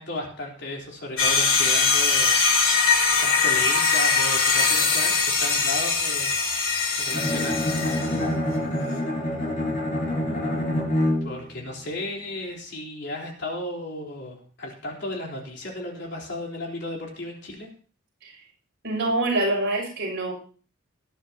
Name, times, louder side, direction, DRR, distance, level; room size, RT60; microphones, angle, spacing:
voice 1, 0.0-6.3 6.9-7.6 11.2-17.7, left 1 dB, 55° left, 0 dB, 3.9 m, -34 dB
sound 1, 1.2-8.2, left 4 dB, 70° left, 4.4 m, -22 dB
Bowed string instrument, 7.1-11.5, left 1 dB, 40° left, 4.8 m, -26 dB
voice 2, 18.8-20.3, right 2 dB, 55° right, -1 dB, 6.5 m, -25 dB
20.0 x 10.5 x 2.9 m, 0.39 s
head